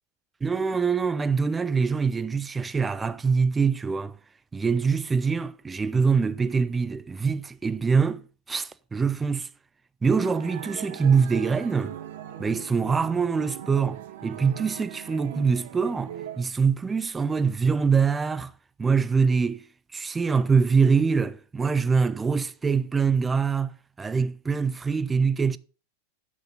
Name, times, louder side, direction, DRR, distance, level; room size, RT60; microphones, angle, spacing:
voice 1, 0.4-4.2 4.5-9.5 10.0-12.0 12.4-18.5 18.8-19.7 19.9-25.6, right 5 dB, 15° right, 0.5 m, -24 dB
sound 1, 10.1-16.4, right 11 dB, 55° right, 0.9 m, -40 dB
8.6 x 7.4 x 5.5 m
figure-of-eight pair, 90°, 0 cm